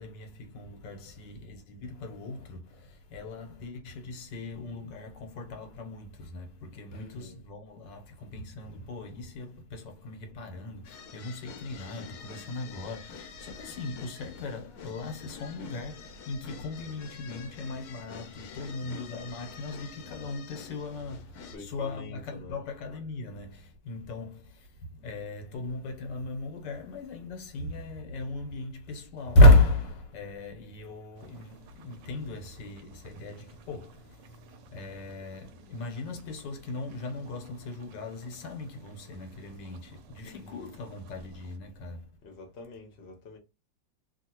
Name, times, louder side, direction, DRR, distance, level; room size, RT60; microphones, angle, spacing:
voice 1, 0.0-42.1, left 1 dB, 85° left, 1.5 m, -32 dB
voice 2, 6.9-7.4 21.5-22.6 40.2-40.7 42.2-43.4, left 3 dB, 45° left, 0.9 m, -45 dB
sound 1, 10.8-21.6, left 6 dB, 70° left, 1.1 m, -47 dB
sound 2, 31.1-41.6, right 6 dB, 85° right, 1.2 m, -57 dB
2.8 x 2.7 x 2.8 m
omnidirectional pair, 1.9 m